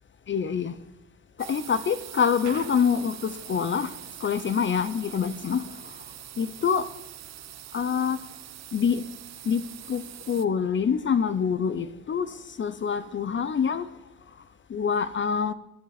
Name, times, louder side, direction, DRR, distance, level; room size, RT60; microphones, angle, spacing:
voice 1, 0.3-0.7 1.4-3.9 4.2-5.7 6.4-6.9 7.7-8.2 8.7-9.0 9.5-12.3 12.6-13.9 14.7-15.5, left 7 dB, 40° left, 0.8 m, -26 dB
sound 1, 1.4-10.5, right 12 dB, 60° right, 0.7 m, -43 dB
sound 2, 2.4-4.0, right 6 dB, 75° right, 1.9 m, -44 dB
22.0 x 8.3 x 4.1 m
cardioid pair, 90°, 30 cm